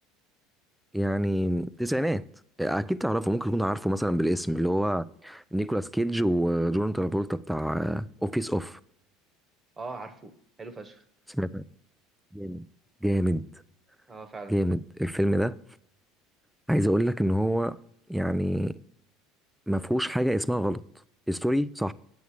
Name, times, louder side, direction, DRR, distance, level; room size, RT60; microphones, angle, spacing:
voice 1, 0.9-2.2 2.6-8.8 11.3-11.6 12.3-12.6 13.0-13.4 14.5-15.5 16.7-17.8 18.1-18.7 19.7-20.8 21.3-21.9, equal, 5° right, 0.5 m, -27 dB
voice 2, 9.8-11.0 14.1-14.6, right 3 dB, 25° right, 1.3 m, -41 dB
9.6 x 8.0 x 4.9 m
hypercardioid pair, 90°, 0 cm